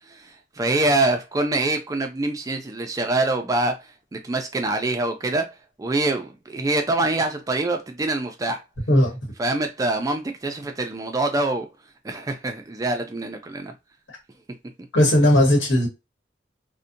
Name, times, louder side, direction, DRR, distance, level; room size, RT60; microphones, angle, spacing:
voice 1, 0.1-8.6 9.4-11.7 12.0-13.7, right 2 dB, 20° right, 0.3 m, -25 dB
voice 2, 14.9-15.9, left 1 dB, 80° left, 1.1 m, -17 dB
2.6 x 2.1 x 2.5 m
head